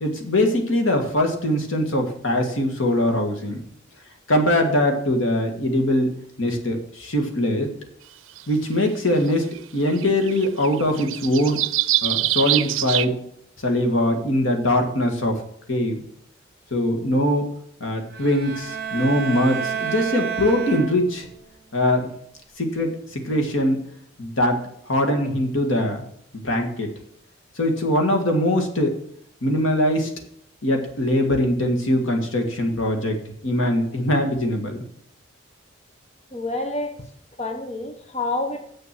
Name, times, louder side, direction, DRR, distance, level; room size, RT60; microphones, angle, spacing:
voice 1, 0.0-3.6 4.3-6.1 6.4-7.7 8.5-9.5 9.7-11.6 12.0-13.2 13.6-15.4 15.7-16.0 16.7-17.5 17.8-21.3 21.7-22.1 22.6-23.8 24.2-24.6 24.9-26.0 26.3-26.9 27.6-29.0 29.4-30.1 30.6-33.2 33.4-34.8, left 1 dB, 85° left, 3 dB, 1.9 m, -22 dB
sound 1, 8.4-8.5 9.5-9.6 9.9-13.1, right 15 dB, 85° right, 0.5 m, -24 dB
sound 2, 18.1-21.3, right 7 dB, 50° right, 1.1 m, -30 dB
voice 2, 36.3-36.9 37.4-38.6, left 2 dB, 35° left, 5 dB, 0.9 m, -28 dB
7.6 x 7.0 x 6.1 m, 0.67 s
head